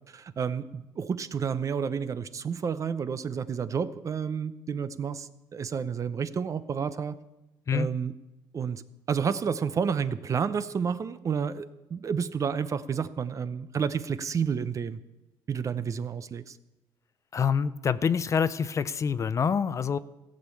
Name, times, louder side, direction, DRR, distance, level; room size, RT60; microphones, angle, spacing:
voice 1, 0.1-7.2 7.7-8.1 8.5-15.0 15.5-16.6, right 6 dB, 35° right, 14 dB, 0.6 m, -30 dB
voice 2, 17.3-20.0, left 6 dB, 35° left, 15 dB, 0.5 m, -26 dB
16.0 x 6.5 x 8.4 m, 1.0 s
cardioid pair, 100°, 9 cm